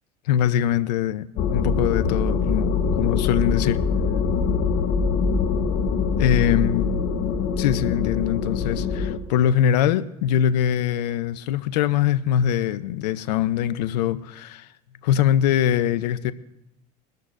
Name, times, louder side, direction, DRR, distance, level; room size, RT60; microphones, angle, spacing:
voice 1, 0.3-1.3 1.5-3.8 6.2-6.9 7.6-14.7 15.0-16.3, left 10 dB, 80° left, 0.6 m, -22 dB
sound 1, 1.4-9.2, left 5 dB, 60° left, 1.2 m, -23 dB
21.5 x 13.0 x 2.6 m
hypercardioid pair, 85°, 21 cm